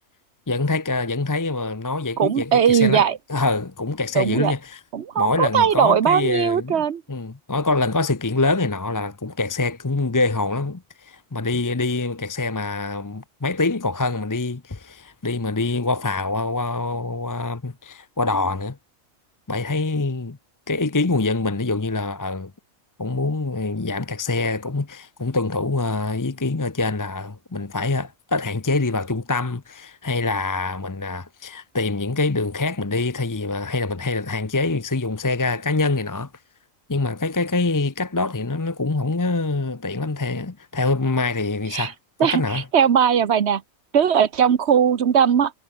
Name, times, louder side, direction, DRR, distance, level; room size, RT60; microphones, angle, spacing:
voice 1, 0.5-4.8 5.2-18.8 19.5-20.4 20.7-22.5 23.0-36.3 36.9-41.9 42.2-42.6, left 3 dB, 20° left, 0.6 m, -25 dB
voice 2, 2.2-3.2 4.1-4.5 4.9-7.0 41.7-41.9 42.2-43.6 43.9-45.5, right 8 dB, 55° right, 1.2 m, -19 dB
omnidirectional pair, 1.4 m